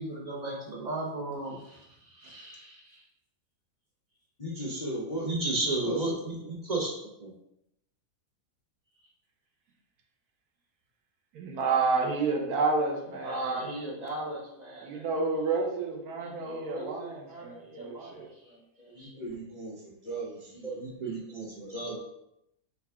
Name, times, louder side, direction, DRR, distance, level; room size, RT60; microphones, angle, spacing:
voice 1, 0.0-3.0 5.2-6.9 7.2-7.3 13.2-15.0 16.2-19.2 20.6-22.0, right 2 dB, 50° right, -3 dB, 0.5 m, -35 dB
voice 2, 4.4-5.5 5.9-6.0 6.4-6.5 18.9-21.0 21.6-21.8, right 1 dB, 35° left, -7 dB, 0.6 m, -37 dB
voice 3, 11.3-13.6 14.8-18.3, right 4 dB, 70° right, 1 dB, 1.3 m, -30 dB
4.7 x 2.6 x 3.4 m, 0.81 s
omnidirectional pair, 1.7 m